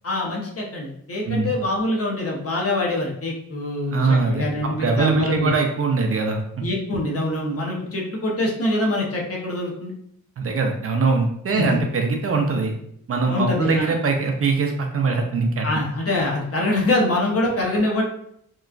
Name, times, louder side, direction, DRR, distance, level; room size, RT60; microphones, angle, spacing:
voice 1, 0.0-5.5 6.6-9.9 11.5-11.8 13.2-13.9 15.6-18.0, left 1 dB, 45° left, -2 dB, 0.9 m, -24 dB
voice 2, 3.9-6.4 10.4-12.7 13.1-15.7, right 4 dB, 45° right, 3 dB, 0.5 m, -22 dB
2.9 x 2.3 x 2.4 m, 0.72 s
cardioid pair, 75°, 32 cm